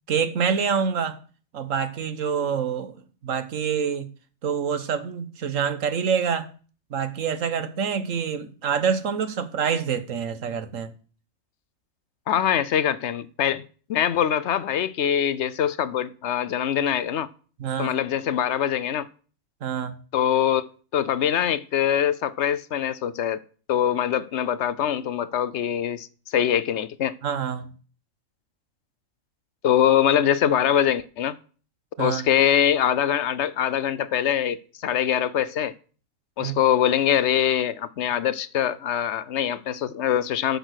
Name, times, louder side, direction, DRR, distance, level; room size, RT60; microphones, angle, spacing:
voice 1, 0.1-1.2 1.5-3.0 3.2-4.1 4.4-6.5 6.9-10.9 17.6-17.9 19.6-20.0 27.2-27.7 32.0-32.2 36.4-36.5, right 7 dB, 70° right, 1.4 m, -26 dB
voice 2, 12.3-13.6 13.9-17.3 17.8-19.1 20.1-23.4 23.7-27.1 29.6-31.3 32.0-35.7 36.4-40.6, left 9 dB, 65° left, 0.9 m, -23 dB
9.8 x 6.7 x 6.4 m
omnidirectional pair, 1.4 m